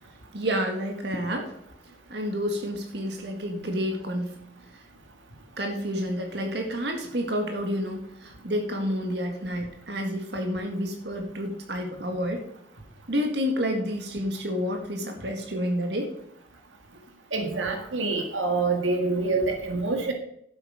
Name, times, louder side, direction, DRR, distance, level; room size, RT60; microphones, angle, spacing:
voice 1, 0.3-1.5 2.1-4.3 5.6-12.4 13.1-16.1, equal, 60° right, 3 dB, 2.0 m, -29 dB
voice 2, 17.3-20.1, right 3 dB, 90° right, 4 dB, 1.9 m, -26 dB
12.0 x 8.0 x 5.1 m, 0.72 s
head